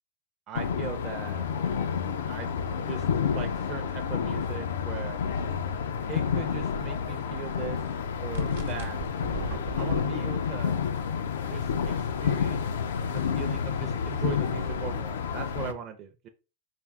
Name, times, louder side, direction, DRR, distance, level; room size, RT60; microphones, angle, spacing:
sound 1, 0.5-15.7, left 6 dB, 90° left, 0.4 m, -29 dB
voice 1, 0.5-1.4 2.3-5.2 6.1-7.8 8.2-9.0 9.8-10.8 11.4-12.6 13.1-16.3, right 7 dB, 35° right, 4 dB, 0.5 m, -39 dB
sound 2, 8.3-10.0, right 5 dB, 90° right, 0.9 m, -36 dB
4.3 x 2.0 x 3.5 m, 0.31 s
supercardioid pair, 130°, 0 cm